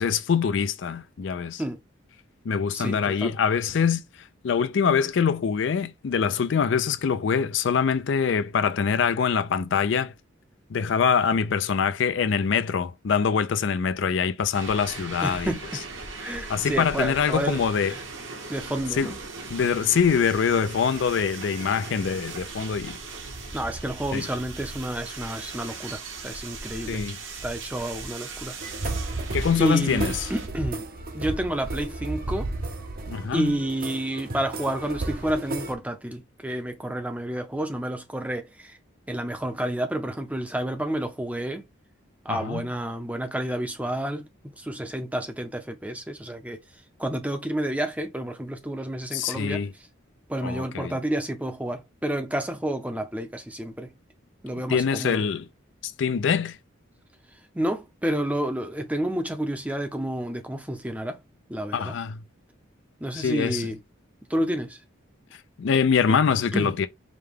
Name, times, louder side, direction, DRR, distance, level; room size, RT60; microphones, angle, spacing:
voice 1, 0.0-1.6 2.4-4.0 4.4-10.1 10.7-15.6 16.5-17.9 19.0-19.1 19.5-23.0 24.1-24.3 26.9-27.2 29.3-30.3 33.1-33.6 42.3-42.7 49.1-49.7 50.4-50.9 54.7-55.5 55.8-56.6 61.7-62.2 63.1-63.7 65.6-66.9, left 6 dB, 60° left, 0.4 m, -24 dB
voice 2, 2.7-3.3 15.2-15.8 16.2-18.0 18.5-19.2 23.5-28.9 29.6-30.8 31.1-32.5 33.3-38.8 39.1-41.6 42.2-46.6 47.0-49.6 50.3-53.9 54.4-55.2 57.5-61.2 61.5-62.0 63.0-63.8 64.3-64.8 66.1-66.2 66.5-66.8, right 1 dB, 5° right, 0.6 m, -30 dB
sound 1, 14.5-30.5, right 4 dB, 65° right, 1.1 m, -39 dB
sound 2, 28.6-35.7, right 2 dB, 45° right, 0.7 m, -33 dB
5.1 x 2.2 x 3.5 m
head